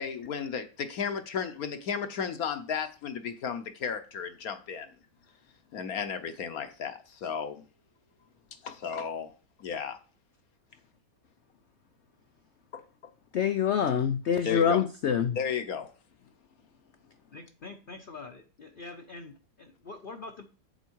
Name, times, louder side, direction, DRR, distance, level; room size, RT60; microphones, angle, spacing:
voice 1, 0.0-4.9 5.7-7.6 8.6-9.3 9.6-10.0 12.7-12.8 14.4-14.8 15.4-15.9, left 7 dB, 60° left, 1.2 m, -34 dB
voice 2, 13.3-15.4, left 8 dB, 80° left, 0.6 m, -25 dB
voice 3, 17.3-20.4, left 3 dB, 45° left, 0.8 m, -45 dB
8.0 x 7.0 x 4.6 m
omnidirectional pair, 1.9 m